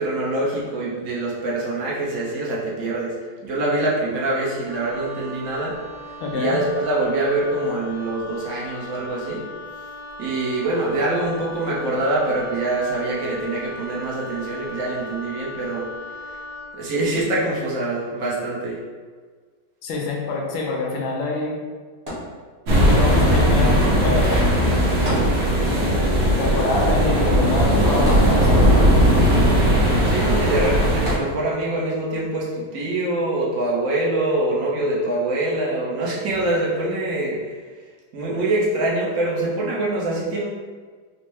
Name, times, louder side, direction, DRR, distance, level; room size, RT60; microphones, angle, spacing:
voice 1, 0.0-3.1 3.4-5.8 6.3-9.4 10.2-15.9 16.7-18.8 30.1-37.5 38.1-40.4, right 2 dB, 60° right, -5 dB, 0.9 m, -24 dB
Wind instrument woodwind instrument, 4.7-16.7, left 1 dB, 40° left, 0.7 m, -38 dB
voice 2, 6.2-6.6 19.8-21.6 22.9-24.5 26.4-29.0, left 3 dB, 80° left, -1 dB, 1.3 m, -26 dB
sound 1, 22.1-23.0 25.0-25.9 26.2-26.3 28.1-28.9 31.0-31.8 32.5-32.6, equal, 30° right, 0.7 m, -33 dB
sound 2, 22.7-31.2, equal, 80° right, 1.6 m, -17 dB
4.4 x 2.1 x 3.1 m, 1.5 s
omnidirectional pair, 2.2 m